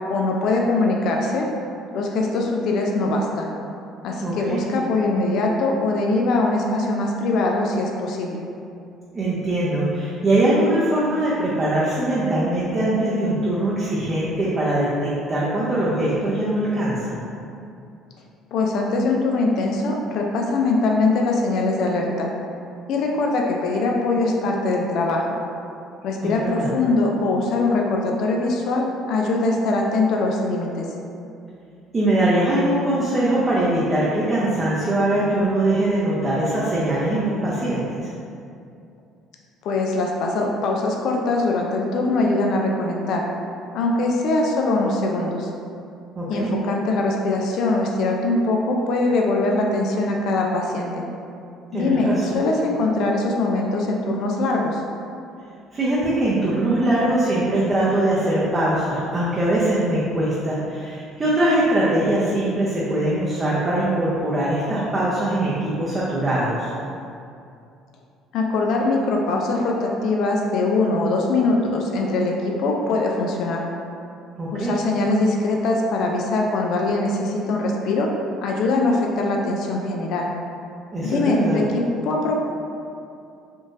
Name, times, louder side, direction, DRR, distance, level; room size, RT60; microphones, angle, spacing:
voice 1, 0.1-1.5 1.9-3.5 4.0-8.4 18.5-22.3 22.9-25.4 26.0-30.9 39.6-43.2 43.7-45.5 46.3-51.0 51.7-54.8 68.3-73.6 74.5-78.1 78.4-80.3 81.0-82.4, left 2 dB, 65° left, 0 dB, 0.3 m, -22 dB
voice 2, 4.2-4.6 9.1-17.2 26.2-26.7 31.9-38.1 46.2-46.5 51.7-52.4 55.7-66.7 74.4-74.7 80.9-81.6, right 1 dB, 30° right, -7 dB, 0.6 m, -22 dB
3.6 x 2.5 x 2.5 m, 2.5 s
supercardioid pair, 80°, 0 cm